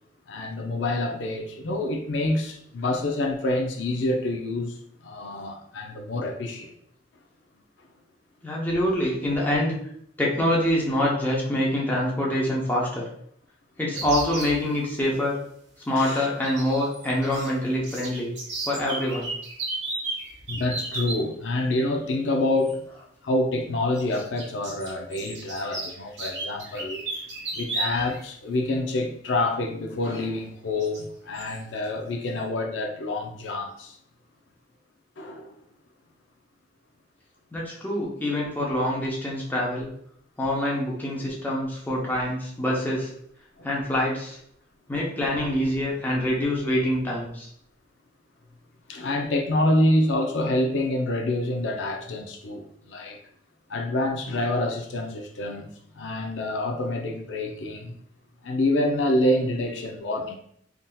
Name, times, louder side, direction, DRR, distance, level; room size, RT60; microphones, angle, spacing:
voice 1, 0.3-6.7 16.0-16.3 20.5-22.8 23.2-27.2 27.5-34.0 35.2-35.5 43.6-43.7 48.9-53.2 53.7-57.9 58.4-60.4, left 1 dB, 90° left, 3 dB, 0.5 m, -27 dB
voice 2, 8.4-9.8 10.2-13.0 13.8-15.4 15.9-18.3 18.7-19.3 37.5-39.9 40.4-43.1 43.6-44.4 44.9-47.5, left 1 dB, 10° left, -4 dB, 0.7 m, -25 dB
sound 1, 14.0-14.6 16.4-17.5 17.8-21.2 22.6-22.7 23.9-28.2 28.5-28.6 30.1-30.2 30.8-31.0 31.4-31.6, right 2 dB, 75° right, 1.0 m, -34 dB
3.5 x 2.7 x 2.3 m, 0.68 s
head